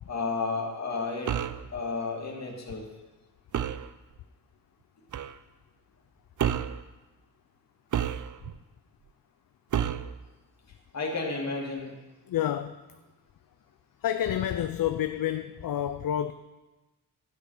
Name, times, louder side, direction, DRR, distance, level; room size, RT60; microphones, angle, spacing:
voice 1, 0.1-1.3 1.7-2.8 10.9-11.9, left 3 dB, 45° left, 2.7 m, -32 dB
sound 1, 1.3-1.7 3.5-3.9 5.1-5.4 6.4-6.8 7.9-8.6 9.7-10.1, right 9 dB, 55° right, 0.5 m, -29 dB
voice 2, 12.3-12.8 14.0-16.3, left 11 dB, 70° left, 0.5 m, -29 dB
12.5 x 9.0 x 5.0 m
wide cardioid pair, 100°, 36 cm